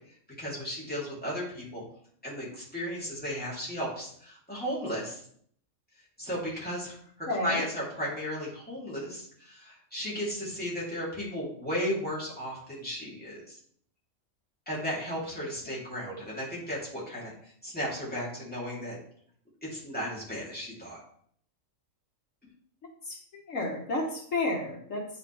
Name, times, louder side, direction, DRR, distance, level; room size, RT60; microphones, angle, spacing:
voice 1, 0.4-1.8 2.2-5.2 6.2-7.0 7.4-13.6 14.7-17.3 17.6-19.0 19.6-21.0, equal, 5° left, -7 dB, 3.2 m, -35 dB
voice 2, 7.3-7.7 16.1-16.2 23.1-23.2 23.5-25.0, left 2 dB, 70° left, 0 dB, 1.6 m, -31 dB
8.9 x 5.7 x 3.4 m, 0.62 s
omnidirectional pair, 1.4 m